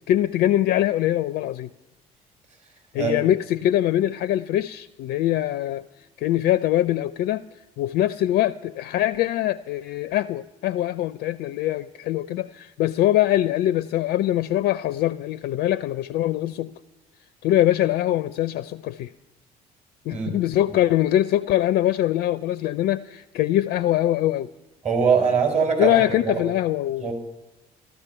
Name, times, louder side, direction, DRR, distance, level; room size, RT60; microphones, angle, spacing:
voice 1, 0.1-1.7 2.9-7.4 7.8-16.7 17.4-19.1 20.1-24.5 25.8-27.1, left 13 dB, 55° left, 16 dB, 0.4 m, -23 dB
voice 2, 24.8-26.4 27.0-27.1, right 6 dB, 40° right, 2 dB, 4.7 m, -22 dB
13.5 x 13.0 x 5.6 m, 1.0 s
hypercardioid pair, 50°, 19 cm